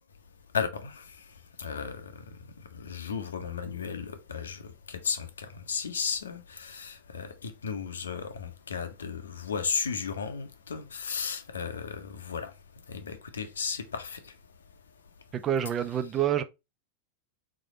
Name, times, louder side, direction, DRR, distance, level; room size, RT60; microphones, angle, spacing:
voice 1, 0.5-1.0 1.6-2.2 2.7-4.6 4.9-12.5 12.9-14.2, left 6 dB, 70° left, 0.7 m, -34 dB
voice 2, 15.4-16.4, right 10 dB, 25° right, 0.5 m, -27 dB
3.9 x 3.2 x 3.7 m
figure-of-eight pair, 90°, 0 cm